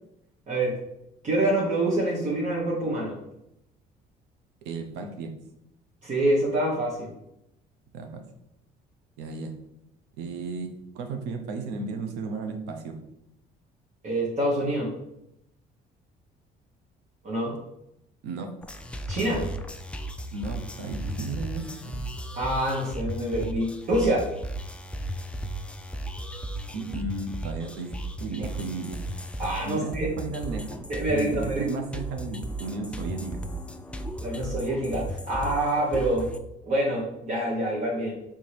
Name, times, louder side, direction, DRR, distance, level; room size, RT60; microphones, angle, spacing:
voice 1, 1.2-3.2 6.0-7.1 14.0-14.9 17.2-17.5 19.1-19.5 22.3-24.3 29.4-30.1 30.9-31.7 34.2-36.3 36.7-38.1, right 1 dB, 45° right, -4 dB, 1.1 m, -26 dB
voice 2, 4.6-5.4 7.9-8.2 9.2-9.6 10.2-13.0 18.2-18.5 20.3-22.1 26.7-29.0 29.6-30.8 31.1-33.4, right 4 dB, 90° right, 5 dB, 0.7 m, -34 dB
sound 1, 18.6-36.4, right 1 dB, 5° left, 0.3 m, -35 dB
4.3 x 3.5 x 3.3 m, 0.83 s
cardioid pair, 110°, 17 cm